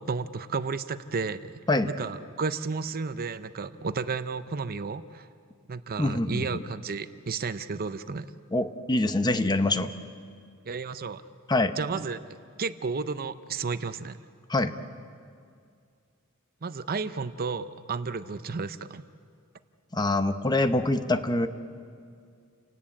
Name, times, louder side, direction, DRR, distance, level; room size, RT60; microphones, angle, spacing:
voice 1, 0.0-5.3 5.7-8.3 10.7-11.2 11.8-12.2 12.6-14.2 16.6-19.0, right 4 dB, 45° right, 12 dB, 0.7 m, -32 dB
voice 2, 6.0-6.6 8.5-9.9 11.5-11.8 14.5-14.7 19.9-21.5, left 2 dB, 20° left, 9 dB, 0.9 m, -25 dB
29.5 x 18.5 x 8.6 m, 2.3 s
head